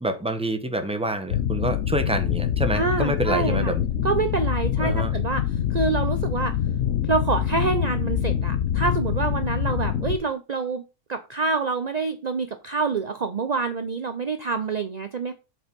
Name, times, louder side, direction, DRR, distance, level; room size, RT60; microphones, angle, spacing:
voice 1, 0.0-3.8 4.8-5.1, right 1 dB, 5° right, 0.9 m, -27 dB
sound 1, 1.3-10.2, left 10 dB, 60° left, 1.1 m, -25 dB
voice 2, 2.7-3.8 4.0-6.6 7.0-10.8 11.1-15.3, right 4 dB, 50° right, 0.5 m, -26 dB
8.0 x 5.5 x 5.3 m
omnidirectional pair, 1.7 m